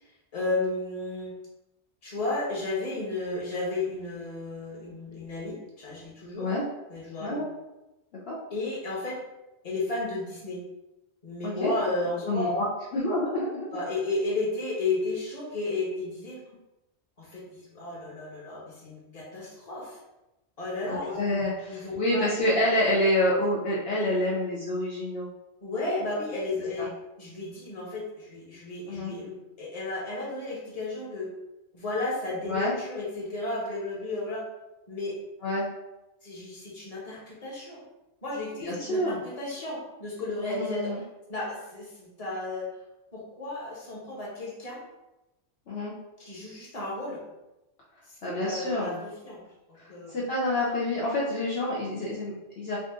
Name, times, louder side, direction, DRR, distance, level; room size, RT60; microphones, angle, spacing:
voice 1, 0.3-1.3 2.0-6.5 6.9-7.4 8.5-9.2 9.6-10.6 11.2-12.4 13.7-16.4 17.2-20.0 20.6-21.2 21.7-22.3 25.6-26.9 27.2-31.3 31.7-34.4 34.9-35.1 36.2-37.8 38.2-40.9 41.3-42.7 43.1-44.8 46.3-47.2 48.1-49.4 49.7-50.1, left 2 dB, 35° left, -5 dB, 1.2 m, -33 dB
voice 2, 11.4-11.7 12.2-12.7 12.9-13.7 20.9-25.3 26.8-26.9 28.9-29.1 32.5-32.7 35.4-35.7 38.6-39.2 40.4-41.0 45.7-45.9 48.2-49.0 50.1-52.8, left 1 dB, 65° left, -6 dB, 1.0 m, -27 dB
4.0 x 2.5 x 3.6 m, 0.97 s
omnidirectional pair, 1.1 m